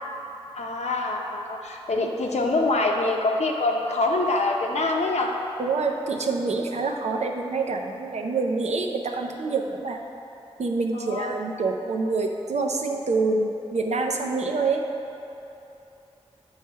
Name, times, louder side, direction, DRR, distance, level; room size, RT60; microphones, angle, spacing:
voice 1, 0.5-5.3 10.9-11.4, left 2 dB, 85° left, 1 dB, 0.7 m, -25 dB
voice 2, 5.6-10.0 10.6-14.8, right 3 dB, 90° right, 2 dB, 0.6 m, -26 dB
8.4 x 3.3 x 5.5 m, 3.0 s
wide cardioid pair, 55°, 11 cm